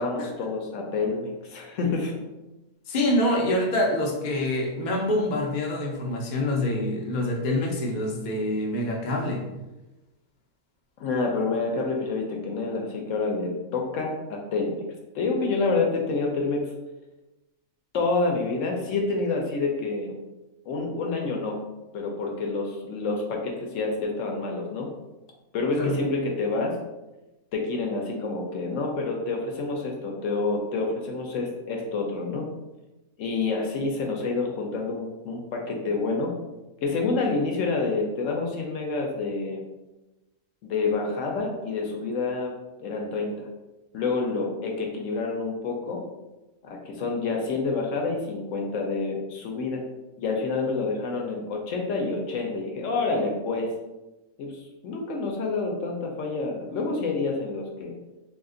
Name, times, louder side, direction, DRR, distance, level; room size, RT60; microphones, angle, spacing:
voice 1, 0.0-2.1 11.0-14.8 15.1-16.7 17.9-20.1 20.7-21.6 21.9-24.9 25.5-26.8 27.5-32.5 33.2-36.3 36.8-39.6 40.6-42.5 42.8-43.5 43.9-46.0 46.6-49.8 50.2-53.7 54.4-57.9, left 3 dB, 70° left, 0 dB, 0.9 m, -28 dB
voice 2, 2.9-9.4 25.8-26.0, left 1 dB, 55° left, -1 dB, 0.5 m, -26 dB
2.8 x 2.4 x 3.7 m, 1.0 s
omnidirectional pair, 1.5 m